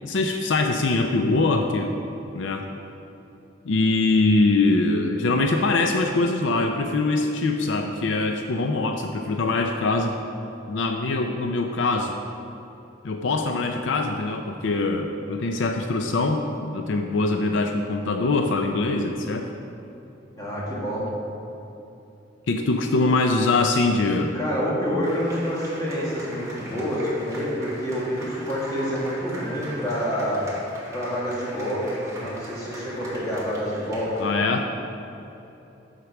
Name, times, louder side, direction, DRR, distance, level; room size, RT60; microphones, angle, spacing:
voice 1, 0.0-1.9 2.3-2.7 3.7-10.2 10.7-12.1 13.0-19.5 22.5-24.3 34.2-34.7, left 3 dB, 75° left, 4 dB, 0.5 m, -23 dB
voice 2, 20.3-21.1 24.3-30.4 30.9-34.1, equal, 20° left, -6 dB, 2.1 m, -27 dB
sound 1, 25.0-34.3, right 1 dB, 15° right, 2.0 m, -40 dB
7.5 x 6.5 x 5.9 m, 2.9 s
head